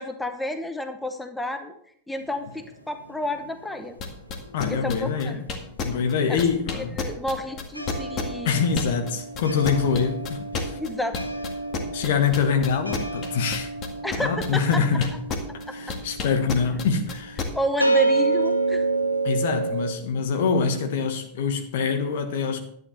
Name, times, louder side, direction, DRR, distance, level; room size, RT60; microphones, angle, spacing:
voice 1, 0.0-1.7 2.1-4.0 4.7-5.4 6.3-6.4 6.7-8.7 10.7-11.2 14.0-14.8 15.7-15.8 17.5-18.9, left 1 dB, 5° left, 0.9 m, -30 dB
sound 1, 2.2-4.9 5.2-19.9, right 3 dB, 90° right, 1.1 m, -29 dB
sound 2, 4.0-9.1 9.4-15.6 15.9-17.5, left 5 dB, 30° left, 1.9 m, -30 dB
voice 2, 4.5-5.4 5.8-7.0 8.4-10.8 11.9-13.7 14.2-15.1 15.7-17.4 19.2-22.6, left 6 dB, 55° left, 1.5 m, -24 dB
11.5 x 9.5 x 4.4 m
figure-of-eight pair, 90°, 0 cm